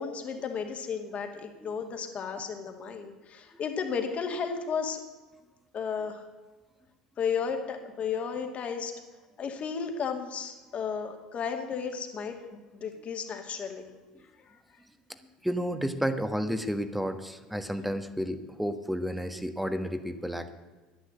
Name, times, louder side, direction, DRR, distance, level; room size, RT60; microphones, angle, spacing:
voice 1, 0.0-5.0 5.7-6.2 7.2-8.9 9.4-13.9 14.7-14.8, left 6 dB, 40° left, 4 dB, 2.4 m, -33 dB
voice 2, 15.4-20.5, equal, ahead, 9 dB, 1.5 m, -31 dB
11.5 x 10.5 x 7.9 m, 1.3 s
figure-of-eight pair, 65°, 3 cm